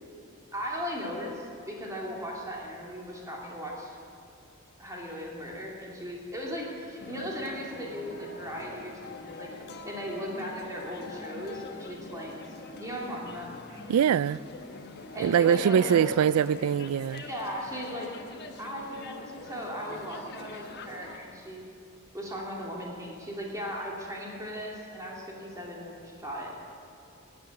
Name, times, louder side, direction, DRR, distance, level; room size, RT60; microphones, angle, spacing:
voice 1, 0.5-4.0 4.8-9.5 9.9-12.5 12.8-13.5 15.1-16.3 17.2-18.1 18.6-21.6 22.1-26.5, equal, 15° right, 2.7 m, -37 dB
sound 1, 7.0-21.2, left 3 dB, 50° left, 1.2 m, -44 dB
voice 2, 13.9-14.4 15.2-17.2, right 8 dB, 85° right, 0.3 m, -23 dB
15.5 x 8.8 x 9.7 m
head